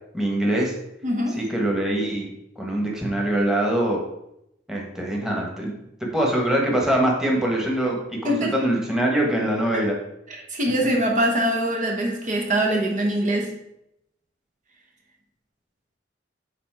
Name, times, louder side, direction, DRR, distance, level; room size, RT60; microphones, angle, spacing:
voice 1, 0.1-0.7 1.4-2.3 2.6-4.0 4.7-5.7 6.1-10.0, right 1 dB, 5° right, -2 dB, 1.3 m, -23 dB
voice 2, 1.0-1.4 8.2-8.5 9.7-9.8 10.3-13.5, right 1 dB, 45° right, 0 dB, 0.9 m, -23 dB
7.1 x 4.1 x 4.7 m, 0.81 s
head